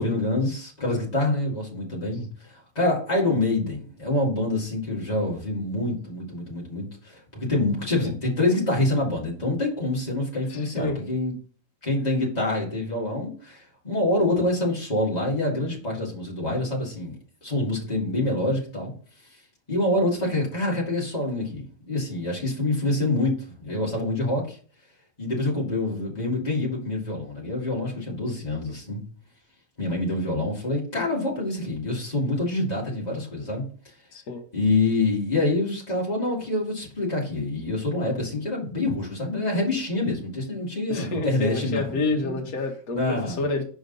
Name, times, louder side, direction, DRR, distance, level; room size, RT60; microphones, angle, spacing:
voice 1, 0.0-11.3 11.8-18.9 19.7-24.6 25.2-29.0 29.8-33.7 34.5-42.4 42.9-43.5, left 2 dB, 25° left, 2.2 m, -26 dB
voice 2, 10.5-11.0 23.7-23.9 34.1-34.4 40.9-43.6, left 2 dB, 65° left, 1.6 m, -29 dB
6.4 x 5.0 x 4.0 m
omnidirectional pair, 1.7 m